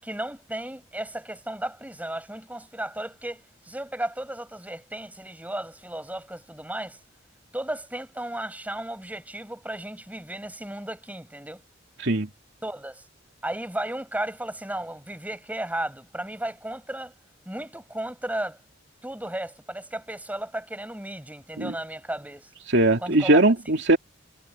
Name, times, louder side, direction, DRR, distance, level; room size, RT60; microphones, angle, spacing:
voice 1, 0.0-7.0 7.5-11.6 12.6-13.0 13.4-17.1 17.5-18.6 19.0-22.5 23.0-23.4, right 1 dB, 10° right, 6.3 m, -34 dB
voice 2, 22.7-24.0, right 2 dB, 65° right, 2.6 m, -20 dB
head